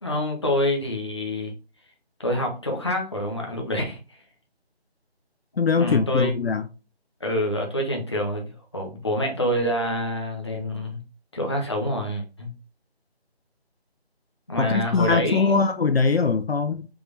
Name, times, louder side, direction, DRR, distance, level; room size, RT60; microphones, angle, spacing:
voice 1, 0.0-1.5 2.2-4.0 5.8-6.5 7.2-11.0 11.3-12.5 14.5-15.7, left 1 dB, 25° left, 0.8 m, -26 dB
voice 2, 5.6-6.7 14.6-16.9, left 4 dB, 65° left, 0.5 m, -22 dB
5.3 x 3.1 x 3.2 m
figure-of-eight pair, 165°, 32 cm